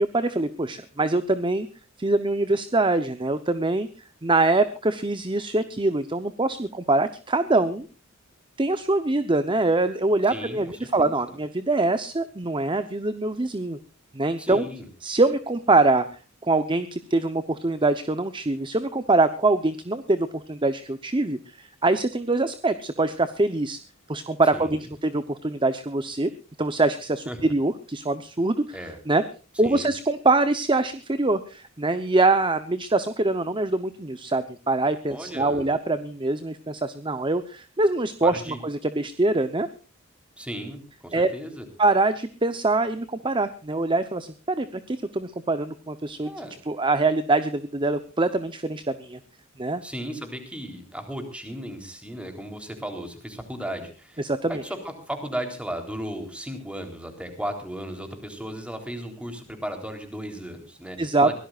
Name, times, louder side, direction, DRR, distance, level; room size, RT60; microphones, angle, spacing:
voice 1, 0.1-1.7 2.0-3.9 4.2-7.9 8.6-13.8 14.1-14.6 15.0-16.1 16.5-23.8 24.1-26.3 26.6-28.8 29.1-29.2 29.6-39.7 41.1-41.3 41.8-46.3 46.7-49.2 49.6-49.8 54.2-54.6 61.0-61.4, right 2 dB, 25° right, 11 dB, 0.8 m, -24 dB
voice 2, 10.3-11.4 14.4-14.9 24.5-24.9 27.3-27.4 28.7-29.0 29.6-29.9 35.1-35.7 38.2-38.6 40.4-41.7 46.2-46.6 49.8-61.4, equal, 5° right, 5 dB, 3.6 m, -35 dB
23.5 x 17.5 x 2.5 m, 0.35 s
head